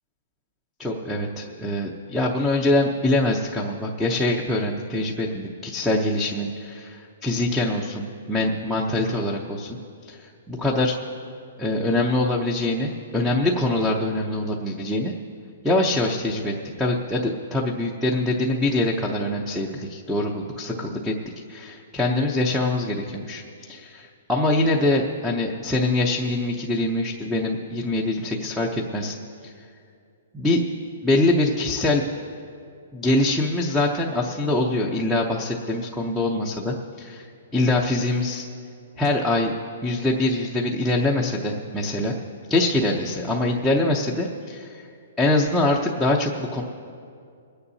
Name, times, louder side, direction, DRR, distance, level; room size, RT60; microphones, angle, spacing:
voice 1, 0.8-9.8 10.1-11.0 11.6-15.1 15.6-21.1 21.5-29.2 29.4-29.5 30.3-30.6 31.0-32.0 32.9-37.3 37.5-38.5 39.0-39.5 39.8-42.2 42.5-44.9 45.2-46.6, left 2 dB, ahead, 0 dB, 0.6 m, -24 dB
28.5 x 9.8 x 2.7 m, 2.4 s
hypercardioid pair, 170°, 0 cm